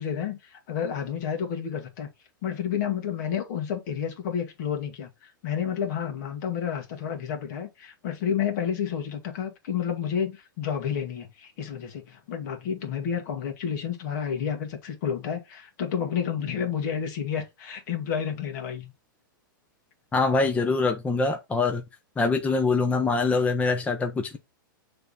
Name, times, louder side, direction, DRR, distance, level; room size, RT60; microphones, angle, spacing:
voice 1, 0.0-2.1 2.4-18.9, left 8 dB, 55° left, 2.1 m, -30 dB
voice 2, 20.1-21.8 22.2-24.4, left 3 dB, 10° left, 0.8 m, -24 dB
6.7 x 3.5 x 4.0 m
hypercardioid pair, 120°, 11 cm